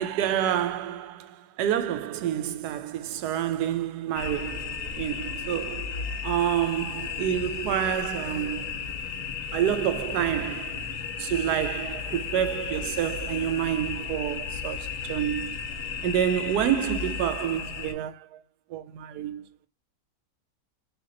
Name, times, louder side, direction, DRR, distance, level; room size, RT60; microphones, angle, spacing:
voice 1, 0.0-8.7 9.5-10.9 11.2-15.6 16.0-18.4 18.7-19.4, right 10 dB, 85° right, 1.1 m, -28 dB
sound 1, 4.1-17.9, left 6 dB, 65° left, 0.9 m, -34 dB
3.4 x 2.7 x 3.7 m
omnidirectional pair, 1.7 m